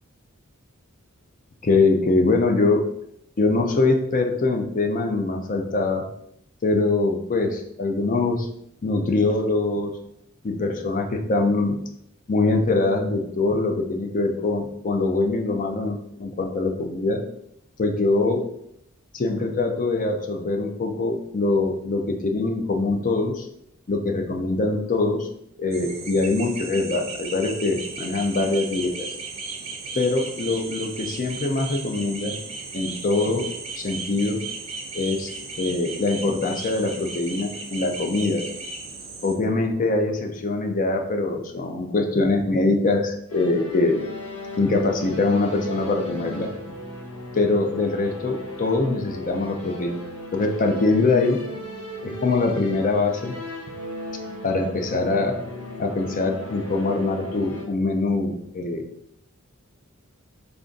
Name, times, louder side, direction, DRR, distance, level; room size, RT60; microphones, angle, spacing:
voice 1, 1.6-2.8 3.4-6.0 6.6-8.5 8.8-9.9 10.4-11.8 12.3-17.2 17.8-18.4 19.1-23.5 23.9-25.3 25.6-29.1 29.9-32.4 32.7-33.5 33.8-34.4 34.9-35.3 35.6-38.4 39.2-44.0 44.6-46.5 47.3-50.0 50.3-51.4 52.0-53.3 54.4-55.4 55.8-58.8, left 3 dB, 40° left, 4 dB, 0.5 m, -23 dB
sound 1, 25.7-39.3, right 4 dB, 30° right, 0.5 m, -36 dB
sound 2, 43.3-57.6, left 1 dB, 85° left, 0.9 m, -36 dB
3.3 x 2.5 x 3.8 m, 0.74 s
head